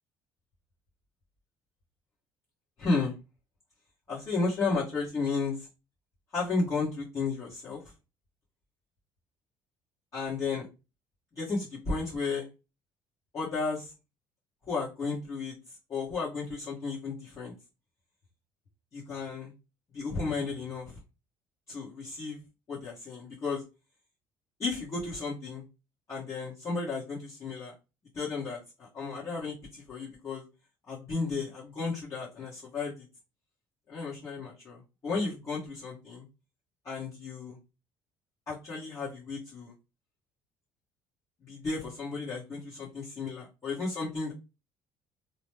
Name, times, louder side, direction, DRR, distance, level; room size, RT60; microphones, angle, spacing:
voice 1, 2.8-3.1 4.1-5.7 6.3-7.8 10.1-10.7 11.4-12.5 13.3-13.9 14.7-15.5 15.9-17.5 18.9-19.5 19.9-21.0 21.7-22.4 22.7-23.6 24.6-25.6 26.1-27.7 28.1-30.4 30.9-33.0 33.9-36.2 36.8-37.6 38.5-39.7 41.5-44.3, left 4 dB, 35° left, -9 dB, 1.3 m, -33 dB
2.9 x 2.1 x 3.2 m, 0.28 s
cardioid pair, 130°, 9 cm